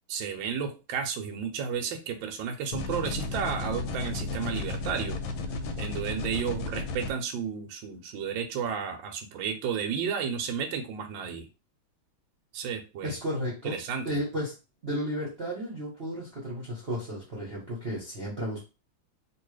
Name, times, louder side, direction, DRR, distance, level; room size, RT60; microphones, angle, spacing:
voice 1, 0.1-5.2 5.8-11.5 12.5-13.1 13.6-14.2, right 7 dB, 70° right, 4 dB, 1.3 m, -32 dB
sound 1, 2.7-7.1, left 3 dB, 75° left, 1.3 m, -33 dB
voice 2, 13.0-13.8 14.0-14.5 14.8-18.6, equal, 40° right, -5 dB, 1.0 m, -33 dB
2.9 x 2.8 x 3.1 m, 0.29 s
omnidirectional pair, 2.4 m